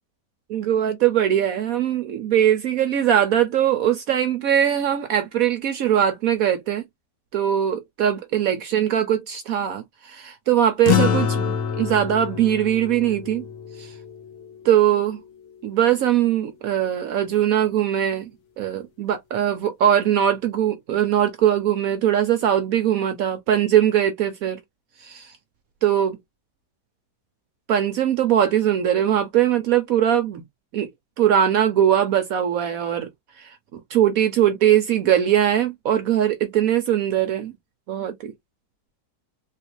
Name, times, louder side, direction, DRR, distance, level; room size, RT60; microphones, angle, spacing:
voice 1, 0.5-6.8 7.3-13.4 13.8-13.9 14.6-15.2 15.6-18.3 18.6-24.6 25.0-25.3 25.8-26.2 27.7-30.4 30.7-30.9 31.2-33.1 33.4-37.5 37.9-38.3, right 10 dB, 65° right, 0.9 m, -21 dB
sound 1, 10.8-15.5, left 8 dB, 55° left, 0.9 m, -26 dB
3.4 x 2.5 x 2.9 m
omnidirectional pair, 1.8 m